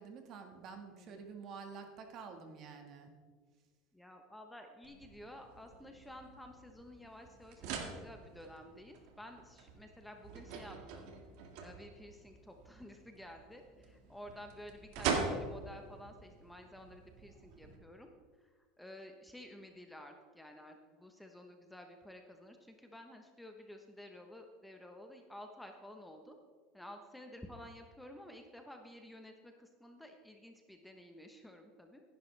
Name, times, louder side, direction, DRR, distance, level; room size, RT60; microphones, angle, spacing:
voice 1, 0.0-3.1, right 5 dB, 45° right, 5 dB, 1.6 m, -49 dB
voice 2, 3.9-11.1 11.6-18.1 18.4-18.5 18.8-26.4 26.7-32.0, left 1 dB, 5° left, 4 dB, 1.0 m, -52 dB
sound 1, 4.8-17.8, right 5 dB, 65° right, 1.8 m, -44 dB
16.0 x 10.5 x 3.3 m, 1.5 s
supercardioid pair, 130°, 0 cm